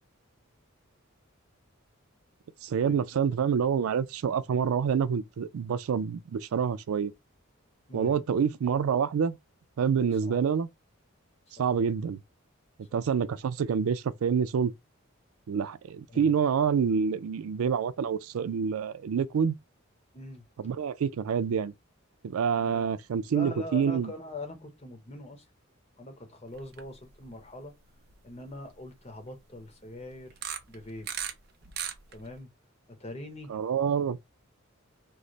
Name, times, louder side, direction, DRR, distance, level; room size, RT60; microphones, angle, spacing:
voice 1, 2.6-7.1 7.9-9.4 9.8-10.7 11.6-12.2 12.9-14.7 15.5-19.6 20.6-21.7 22.2-24.1 33.5-34.2, right 7 dB, 90° right, 0.4 m, -27 dB
voice 2, 7.9-8.2 10.1-10.4 11.6-11.7 12.9-13.0 16.1-16.3 20.1-20.5 22.6-22.9 23.3-25.4 26.0-27.7 28.2-30.4 30.7-31.1 32.1-32.5 32.9-33.5, left 2 dB, 30° left, 0.9 m, -42 dB
sound 1, 26.6-26.9 27.3-27.4 28.1-28.2 30.3-31.3 31.6-32.4, right 9 dB, 50° right, 0.6 m, -35 dB
3.1 x 2.0 x 3.8 m
head